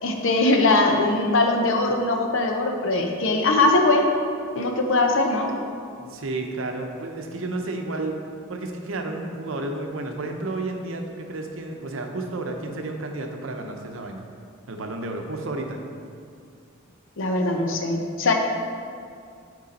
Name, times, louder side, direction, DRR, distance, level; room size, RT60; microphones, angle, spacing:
voice 1, 0.0-4.1 4.5-5.5 17.2-18.3, left 2 dB, 65° left, 3 dB, 0.7 m, -21 dB
voice 2, 6.0-8.2 8.5-14.2 14.7-15.8, right 2 dB, 70° right, 4 dB, 0.7 m, -31 dB
6.6 x 4.7 x 4.1 m, 2.3 s
head